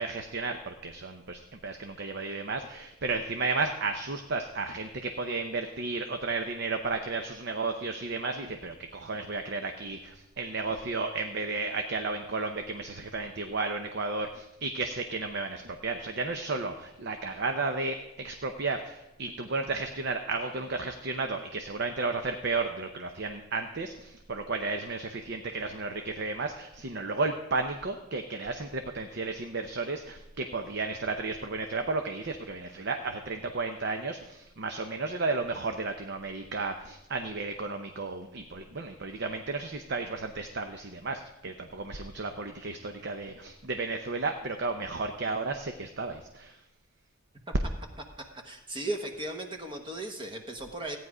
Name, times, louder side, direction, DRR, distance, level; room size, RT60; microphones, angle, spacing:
voice 1, 0.0-46.6, right 3 dB, 50° right, 6 dB, 0.7 m, -33 dB
voice 2, 48.2-51.0, right 1 dB, 20° right, 4 dB, 1.1 m, -36 dB
14.5 x 9.4 x 4.9 m, 0.93 s
head